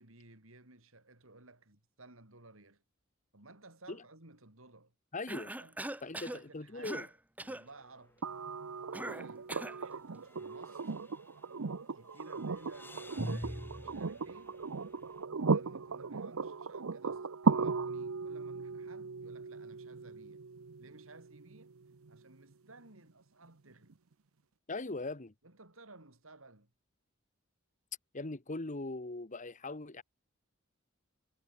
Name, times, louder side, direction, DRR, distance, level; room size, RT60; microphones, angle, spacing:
voice 1, 0.0-2.8 3.3-4.9 5.4-7.1 7.4-8.2 9.0-9.5 9.8-10.9 11.9-14.6 15.3-20.4 20.8-21.7 22.1-24.0 25.4-26.7, right 2 dB, 75° right, 5.2 m, -56 dB
voice 2, 5.1-5.5 6.0-7.1 24.7-25.3 28.1-30.0, left 2 dB, 35° left, 1.3 m, -40 dB
Cough, 5.3-6.4 6.8-7.1 7.4-7.7 8.9-9.8, right 1 dB, 10° right, 1.0 m, -41 dB
sound 1, 7.6-8.0 8.3-8.4 10.2-11.7 12.0-15.1, equal, 10° left, 1.2 m, -46 dB
sound 2, 8.2-22.2 23.9-24.0, right 4 dB, 90° right, 0.8 m, -37 dB
head